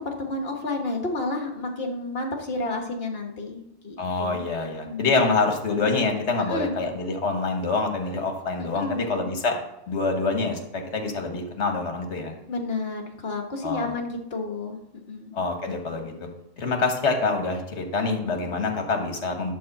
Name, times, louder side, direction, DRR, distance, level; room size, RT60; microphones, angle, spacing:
voice 1, 0.0-3.6 3.8-4.4 4.8-5.1 6.5-6.7 8.6-9.2 12.5-15.3, left 2 dB, 60° left, 3 dB, 1.5 m, -31 dB
voice 2, 4.0-9.6 9.9-12.3 13.6-13.9 15.3-16.3 16.6-19.5, left 3 dB, 75° left, 4 dB, 1.5 m, -26 dB
9.5 x 4.5 x 7.1 m, 0.86 s
omnidirectional pair, 1.2 m